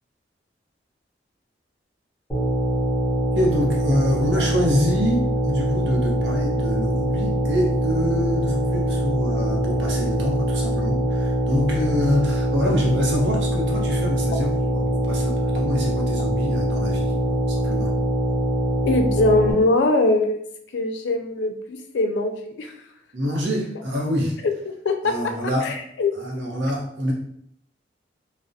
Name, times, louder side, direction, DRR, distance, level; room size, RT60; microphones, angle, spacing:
sound 1, 2.3-19.5, right 1 dB, 10° left, 0.8 m, -23 dB
voice 1, 3.3-17.9 23.1-24.3 25.0-25.7 26.1-27.1, equal, 75° right, -2 dB, 0.7 m, -26 dB
voice 2, 18.9-20.4 20.7-22.7 24.8-25.1 25.6-26.1, left 2 dB, 80° left, 6 dB, 0.4 m, -21 dB
2.3 x 2.0 x 2.6 m, 0.67 s
head